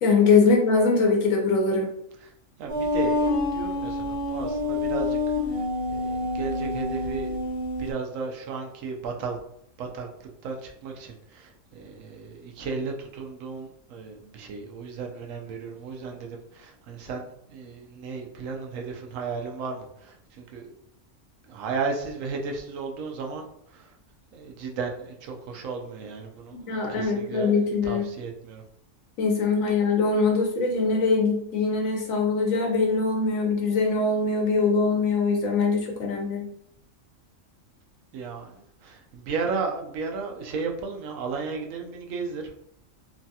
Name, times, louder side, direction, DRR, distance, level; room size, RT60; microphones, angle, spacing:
voice 1, 0.0-1.9 26.7-28.0 29.2-36.5, left 4 dB, 90° left, 1 dB, 1.2 m, -22 dB
voice 2, 2.6-5.2 5.9-7.5 7.8-9.4 9.8-10.1 10.4-20.7 21.5-23.9 24.3-28.6 38.1-38.5 38.8-42.5, right 4 dB, 80° right, 2 dB, 0.9 m, -34 dB
sound 1, 2.7-7.9, left 2 dB, 20° right, 1.1 m, -27 dB
3.1 x 2.2 x 2.7 m, 0.73 s
omnidirectional pair, 1.4 m